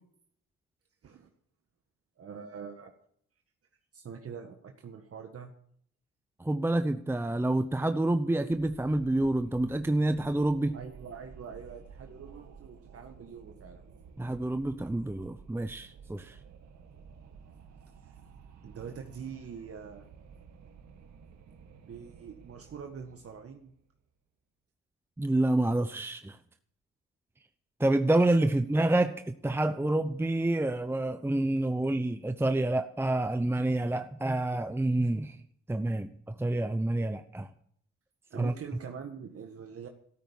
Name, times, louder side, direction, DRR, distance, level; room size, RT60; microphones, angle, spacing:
voice 1, 2.2-2.9 3.9-5.5 10.7-13.8 18.0-18.2 18.6-20.1 21.9-23.7 28.4-28.6 38.3-39.9, right 6 dB, 50° right, 4 dB, 1.7 m, -44 dB
voice 2, 6.4-10.7 14.2-16.4 25.2-26.4 27.8-35.4 35.7-36.1 36.4-37.5 38.3-38.5, right 1 dB, 10° right, 9 dB, 0.8 m, -28 dB
Wind, 8.5-23.8, right 6 dB, 65° right, 2.2 m, -53 dB
13.5 x 13.0 x 7.2 m, 0.66 s
cardioid pair, 90°, 30 cm